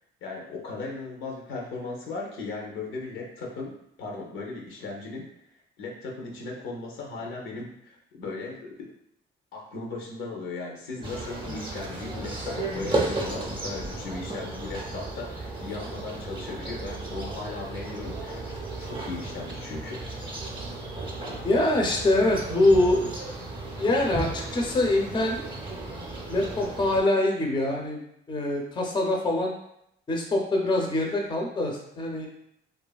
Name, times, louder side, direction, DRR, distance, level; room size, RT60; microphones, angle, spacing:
voice 1, 0.2-5.3 5.8-8.9 9.5-18.4 18.8-20.1, left 3 dB, 85° left, 0 dB, 0.6 m, -37 dB
sound 1, 11.0-27.0, right 2 dB, 25° right, 0.5 m, -34 dB
voice 2, 21.4-23.1 23.8-25.4 26.3-29.5 30.1-32.3, left 1 dB, 25° left, 0 dB, 0.5 m, -24 dB
2.7 x 2.3 x 2.3 m, 0.76 s
cardioid pair, 90°, 20 cm